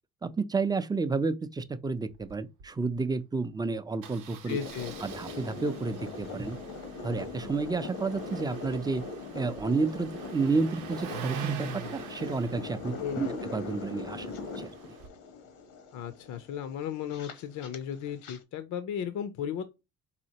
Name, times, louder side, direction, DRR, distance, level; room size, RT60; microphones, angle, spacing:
voice 1, 0.2-4.6 5.0-6.6 7.0-9.0 9.3-14.3 14.6-14.7, right 4 dB, 15° right, 0.4 m, -31 dB
Engine starting, 2.1-2.3 2.6-2.7 2.9-3.1 4.0-15.1, right 7 dB, 85° right, 0.7 m, -44 dB
voice 2, 4.5-4.9 13.0-13.3 15.9-19.6, left 8 dB, 70° left, 0.5 m, -35 dB
sound 1, 4.6-18.4, left 3 dB, 90° left, 0.9 m, -41 dB
4.2 x 2.8 x 2.7 m
cardioid pair, 90°, 30 cm